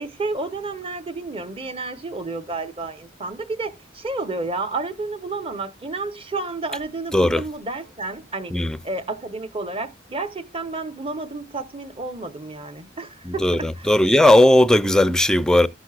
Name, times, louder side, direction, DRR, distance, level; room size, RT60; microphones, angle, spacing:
voice 1, 0.0-8.6 8.8-13.9, right 3 dB, 30° right, 0.9 m, -31 dB
voice 2, 13.3-15.7, left 1 dB, 5° left, 0.4 m, -17 dB
15.0 x 6.2 x 2.4 m
head